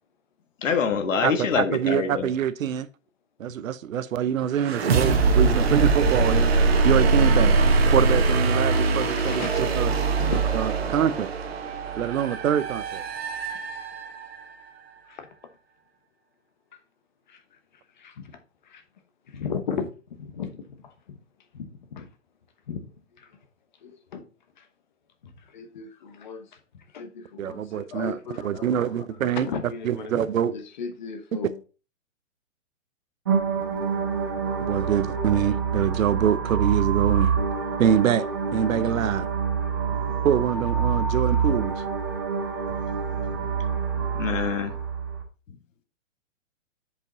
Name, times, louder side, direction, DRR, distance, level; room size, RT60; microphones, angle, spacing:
voice 1, 0.6-2.3 44.2-44.7, left 6 dB, 70° left, 1.4 m, -25 dB
voice 2, 1.2-2.9 3.4-7.6 7.9-9.9 10.5-11.3 12.0-13.0 27.4-29.5 29.8-30.5 31.3-31.5 34.7-37.3 37.8-38.3 38.5-39.3 40.2-41.8, right 9 dB, 85° right, 0.8 m, -25 dB
sound 1, 4.6-14.3, right 3 dB, 50° right, 1.2 m, -22 dB
voice 3, 8.7-10.4 10.7-11.2 15.1-15.3 17.3-17.4 18.0-18.4 18.7-18.8 19.3-19.9 20.2-21.2 21.5-22.1 22.7-22.8 23.2-23.3 23.8-24.2 24.6-24.7 25.2-26.4 26.9-31.6, left 6 dB, 35° left, 1.0 m, -36 dB
sound 2, 33.3-45.2, right 6 dB, 20° right, 0.6 m, -26 dB
7.2 x 5.2 x 4.0 m
hypercardioid pair, 175°, 39 cm